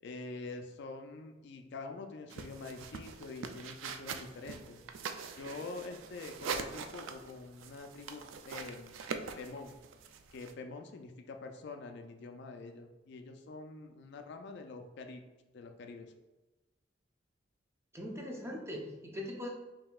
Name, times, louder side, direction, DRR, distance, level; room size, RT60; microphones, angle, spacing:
voice 1, 0.0-4.8 5.4-8.9 9.4-9.7 10.3-15.2 15.5-16.1, left 3 dB, 60° left, 5 dB, 0.4 m, -46 dB
sound 1, 2.3-10.5, right 5 dB, 80° right, 0.3 m, -43 dB
voice 2, 17.9-19.5, left 1 dB, 15° right, -1 dB, 0.7 m, -41 dB
5.3 x 2.8 x 2.3 m, 1.1 s
head